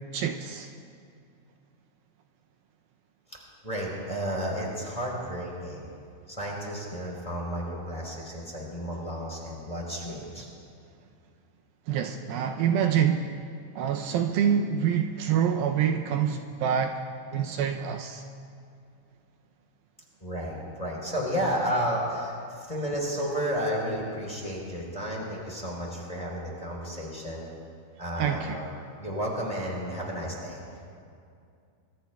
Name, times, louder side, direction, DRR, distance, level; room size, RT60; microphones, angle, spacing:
voice 1, 0.1-0.7 11.9-13.3 13.8-17.0 17.3-18.3 28.2-28.6, right 8 dB, 80° right, 4 dB, 2.3 m, -26 dB
voice 2, 3.3-5.9 6.3-10.5 20.2-27.5 28.0-28.7 29.0-30.6, equal, 10° left, -3 dB, 3.3 m, -32 dB
25.5 x 24.0 x 2.3 m, 2.4 s
omnidirectional pair, 4.5 m